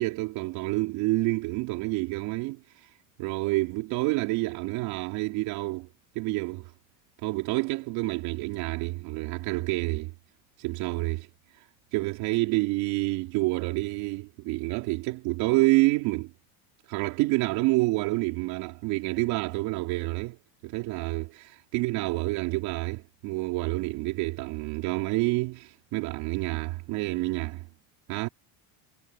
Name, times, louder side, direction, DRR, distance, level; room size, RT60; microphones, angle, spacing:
voice 1, 0.0-2.9 3.2-5.9 6.2-6.7 7.2-10.1 10.6-11.3 11.5-11.7 11.9-16.3 16.9-20.4 20.6-27.7 28.1-28.3, right 22 dB, 65° right, 3.6 m, -28 dB
cardioid pair, 155°, 40 cm